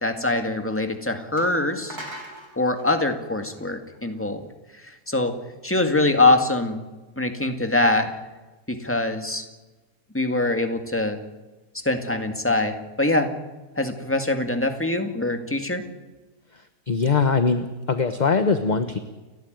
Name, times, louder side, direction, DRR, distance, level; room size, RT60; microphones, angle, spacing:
voice 1, 0.0-2.0 2.6-4.4 5.1-5.4 5.6-6.8 7.2-8.1 8.7-9.4 10.1-11.2 11.9-13.3 13.8-15.8, left 2 dB, 10° left, 6 dB, 1.9 m, -23 dB
sound 1, 0.8-0.9 1.4-4.2, right 1 dB, 70° right, 5.0 m, -41 dB
voice 2, 16.9-19.0, left 4 dB, 30° left, 9 dB, 1.0 m, -21 dB
29.5 x 11.5 x 9.3 m, 1.2 s
omnidirectional pair, 1.7 m